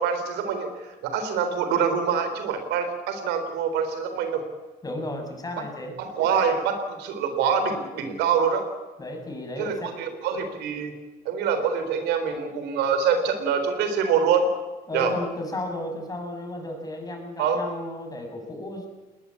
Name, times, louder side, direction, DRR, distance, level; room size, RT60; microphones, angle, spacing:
voice 1, 0.0-4.4 6.0-8.6 9.6-10.9 11.3-14.5 14.9-15.1 17.4-17.6, right 6 dB, 85° right, 8 dB, 3.9 m, -25 dB
voice 2, 4.8-6.0 9.0-9.9 14.9-18.9, left 1 dB, 20° left, 3 dB, 7.0 m, -33 dB
20.5 x 19.5 x 8.5 m, 1.2 s
cardioid pair, 110°, 17 cm